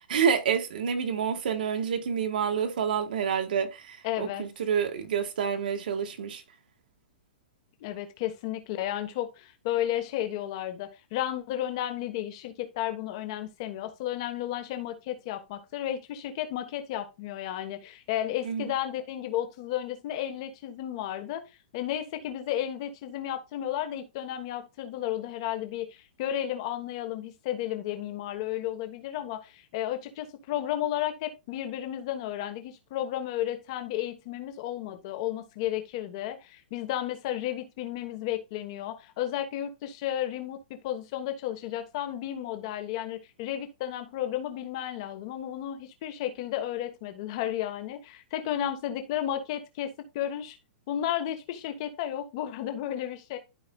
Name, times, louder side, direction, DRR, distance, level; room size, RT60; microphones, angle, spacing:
voice 1, 0.0-6.4 18.4-18.7, right 7 dB, 60° right, 1.4 m, -28 dB
voice 2, 4.0-4.4 7.8-21.4 21.7-50.6 50.9-53.4, left 12 dB, 30° left, 1.2 m, -33 dB
13.0 x 4.9 x 2.3 m
hypercardioid pair, 180°, 6 cm